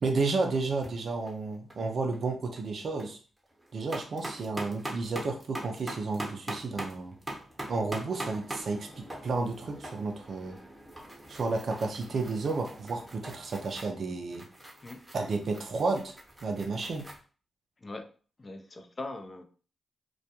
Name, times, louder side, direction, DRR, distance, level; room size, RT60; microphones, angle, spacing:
voice 1, 0.0-3.2 3.7-7.2 7.7-10.6 11.3-14.5 15.1-16.2 16.4-17.1, right 3 dB, 60° right, 4 dB, 0.4 m, -32 dB
sound 1, 0.7-0.9 1.2-1.8 2.1-2.2 2.6-3.1 3.4-17.2, right 1 dB, 10° right, 0.9 m, -42 dB
voice 2, 18.4-19.4, left 2 dB, 40° left, 6 dB, 0.4 m, -41 dB
2.2 x 2.1 x 2.8 m, 0.39 s
supercardioid pair, 50°, 0 cm